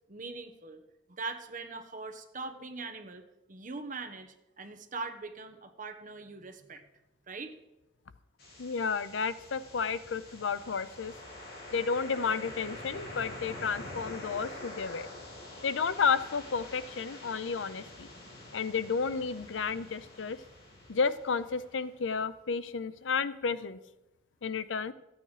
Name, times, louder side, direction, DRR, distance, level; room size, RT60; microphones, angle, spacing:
voice 1, 0.1-0.8 1.1-3.2 3.5-6.8 7.3-7.6, right 3 dB, 45° right, 7 dB, 1.1 m, -41 dB
sound 1, 8.4-22.3, left 1 dB, 55° left, 3.7 m, -46 dB
voice 2, 8.6-11.1 11.7-15.1 15.6-18.1 18.5-20.4 20.9-23.8 24.4-24.9, left 5 dB, 90° left, 15 dB, 0.6 m, -32 dB
14.5 x 9.1 x 5.0 m, 0.97 s
head